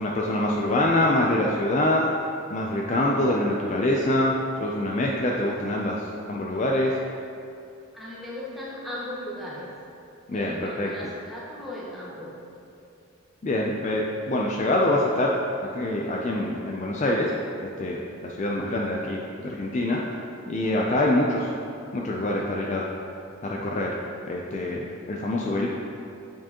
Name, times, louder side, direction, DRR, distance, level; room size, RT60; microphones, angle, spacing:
voice 1, 0.0-2.1 2.5-7.0 10.3-11.1 13.4-15.4 15.7-17.3 17.6-20.0 20.5-21.5 21.9-22.9 23.4-24.0 24.3-25.7, left 1 dB, 35° left, -2 dB, 0.4 m, -25 dB
voice 2, 7.9-9.7 10.3-12.3, left 1 dB, ahead, -7 dB, 1.0 m, -37 dB
8.5 x 4.6 x 2.9 m, 2.6 s
head